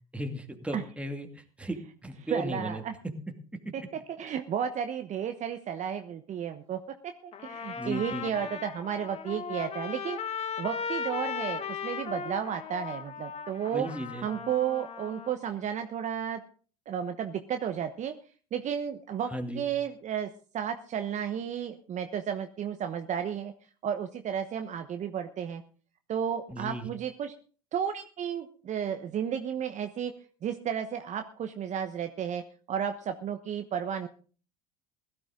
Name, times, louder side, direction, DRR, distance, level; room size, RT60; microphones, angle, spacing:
voice 1, 0.1-1.8 2.0-2.8 7.8-8.3 13.7-14.3 19.3-19.6 26.5-26.9, right 1 dB, 5° right, 4 dB, 2.5 m, -35 dB
voice 2, 2.3-2.9 3.7-3.8 4.2-13.9 14.2-16.4 16.9-18.1 18.5-23.5 23.8-25.6 26.1-27.3 27.7-30.1 30.4-32.4 32.7-34.1, right 8 dB, 40° right, 7 dB, 1.1 m, -33 dB
Trumpet, 7.3-15.3, left 6 dB, 35° left, 1.5 m, -37 dB
16.5 x 12.5 x 3.8 m, 0.39 s
hypercardioid pair, 80°, 18 cm